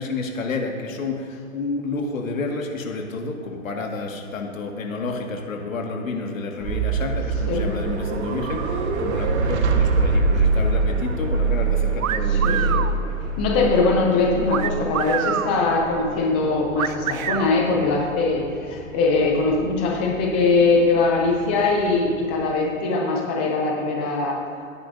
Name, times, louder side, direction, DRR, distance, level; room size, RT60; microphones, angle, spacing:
voice 1, 0.0-12.7, left 3 dB, 75° left, 2 dB, 2.0 m, -30 dB
sound 1, 6.6-22.5, right 4 dB, 55° right, 1.3 m, -25 dB
sound 2, 12.0-12.9 14.5-15.5 16.8-17.5, right 10 dB, 80° right, 0.6 m, -26 dB
voice 2, 12.3-12.8 13.4-24.7, left 3 dB, 10° left, -1 dB, 0.3 m, -21 dB
17.5 x 9.6 x 2.7 m, 2.1 s
hypercardioid pair, 140°, 41 cm